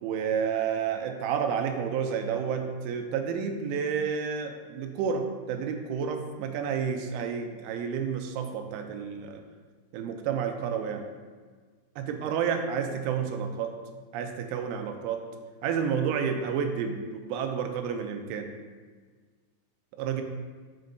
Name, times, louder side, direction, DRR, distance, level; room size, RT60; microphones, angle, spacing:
voice 1, 0.0-9.4 9.9-11.1 12.0-13.8 14.1-15.3 15.6-18.5 20.0-20.2, right 7 dB, 85° right, 5 dB, 2.9 m, -30 dB
11.5 x 4.4 x 2.6 m, 1.5 s
omnidirectional pair, 5.6 m